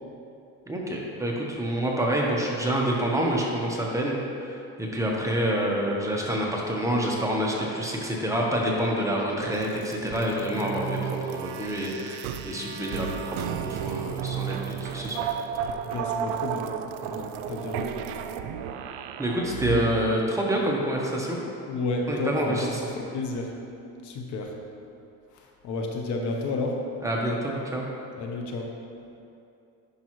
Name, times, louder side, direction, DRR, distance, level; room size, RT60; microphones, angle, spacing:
voice 1, 0.7-4.5 4.8-15.2 19.2-21.4 22.1-22.8 27.0-27.9, right 1 dB, 10° right, -2 dB, 1.0 m, -27 dB
sound 1, 8.9-20.1, right 9 dB, 90° right, 0.5 m, -33 dB
voice 2, 15.8-16.7 17.0-18.1 19.7-19.8 21.7-23.6 24.0-24.6 25.3-26.8 28.2-28.7, left 2 dB, 55° left, 1 dB, 1.0 m, -31 dB
10.5 x 5.4 x 3.1 m, 2.7 s
cardioid pair, 125°, 35 cm